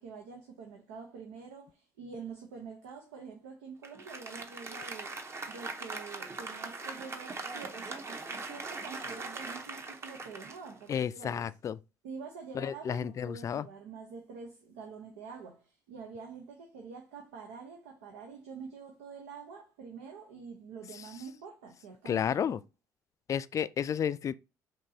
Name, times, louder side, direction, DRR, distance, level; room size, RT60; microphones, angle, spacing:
voice 1, 0.0-5.2 5.5-11.5 12.0-22.6, right 5 dB, 90° right, 0.8 m, -46 dB
Applause, 3.8-11.4, right 3 dB, 35° right, 0.9 m, -41 dB
voice 2, 10.9-11.8 12.6-13.7 22.1-22.6 23.3-24.3, left 8 dB, 45° left, 0.3 m, -31 dB
5.4 x 2.9 x 2.7 m
supercardioid pair, 65°, 8 cm